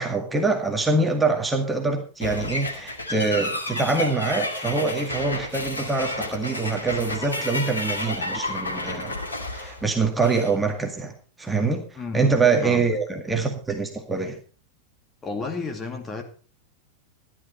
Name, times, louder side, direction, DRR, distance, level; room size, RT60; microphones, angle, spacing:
voice 1, 0.0-9.2 9.5-11.8 12.1-14.4, right 3 dB, 10° right, 3 dB, 2.0 m, -24 dB
sound 1, 2.2-10.5, left 1 dB, 80° left, 2.3 m, -31 dB
voice 2, 15.2-16.2, left 3 dB, 20° left, 4 dB, 2.5 m, -31 dB
13.5 x 11.5 x 4.3 m, 0.37 s
figure-of-eight pair, 90°, 0 cm